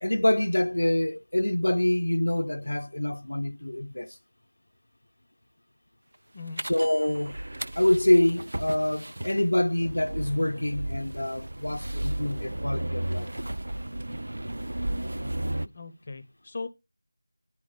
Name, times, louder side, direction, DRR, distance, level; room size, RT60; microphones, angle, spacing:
voice 1, 0.0-4.2 6.6-7.3 7.8-13.3, left 1 dB, 65° left, 0.5 m, -26 dB
sound 1, 6.6-15.7, right 1 dB, 55° right, 0.5 m, -34 dB
voice 2, 15.2-16.7, left 3 dB, 20° left, 0.6 m, -40 dB
10.0 x 4.8 x 5.3 m
figure-of-eight pair, 175°, 0 cm